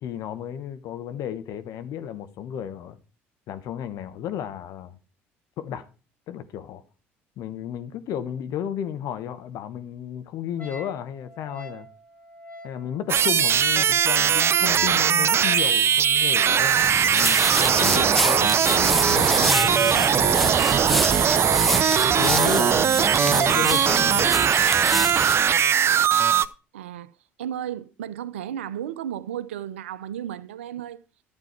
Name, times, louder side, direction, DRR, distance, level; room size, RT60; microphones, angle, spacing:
voice 1, 0.0-3.0 3.5-5.0 5.6-5.9 6.3-6.8 7.4-11.9 12.6-20.8 22.2-24.3, left 9 dB, 60° left, 1.2 m, -33 dB
Wind instrument woodwind instrument, 10.6-16.8, left 1 dB, 25° left, 2.4 m, -44 dB
sound 1, 13.1-26.5, right 8 dB, 40° right, 0.7 m, -20 dB
sound 2, 16.8-25.4, equal, ahead, 0.6 m, -28 dB
voice 2, 26.7-27.1 27.4-31.0, right 10 dB, 80° right, 0.7 m, -33 dB
12.0 x 8.7 x 4.5 m
hypercardioid pair, 60°, 6 cm